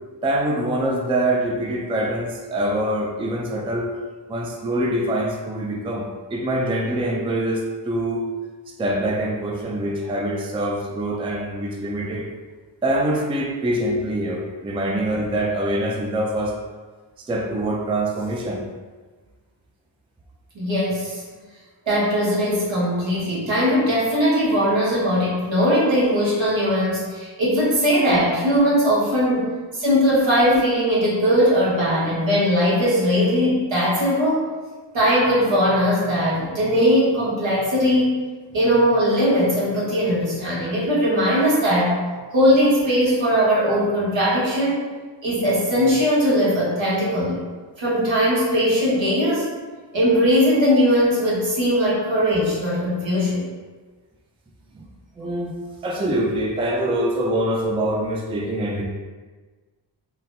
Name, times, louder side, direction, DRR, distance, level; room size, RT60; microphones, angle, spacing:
voice 1, 0.2-3.9 4.3-8.3 8.8-12.3 12.8-16.6 17.3-18.6 54.8-54.9 55.2-55.5 55.8-58.8, right 1 dB, 15° right, 0 dB, 0.3 m, -24 dB
voice 2, 20.5-21.2 21.9-29.5 29.8-34.5 34.9-38.2 38.5-44.8 45.2-47.4 47.8-49.5 49.9-53.4, equal, 80° right, -7 dB, 1.2 m, -19 dB
3.8 x 2.2 x 2.7 m, 1.4 s
wide cardioid pair, 75°, 45 cm